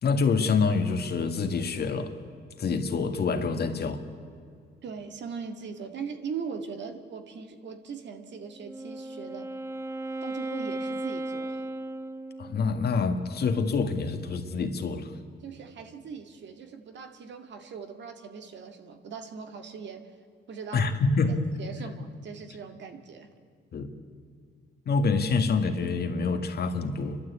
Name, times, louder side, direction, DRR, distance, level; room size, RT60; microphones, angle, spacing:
voice 1, 0.0-2.1 2.6-4.0 12.4-15.2 20.7-21.4 23.7-23.9 24.9-27.2, left 4 dB, 55° left, 6 dB, 1.9 m, -26 dB
voice 2, 4.8-9.5 10.2-11.6 15.4-20.1 20.5-20.9 21.3-23.3, right 6 dB, 65° right, 6 dB, 2.1 m, -40 dB
Wind instrument woodwind instrument, 8.5-12.8, right 2 dB, 15° right, 1.0 m, -35 dB
29.5 x 12.5 x 8.4 m, 2.2 s
cardioid pair, 90°, 20 cm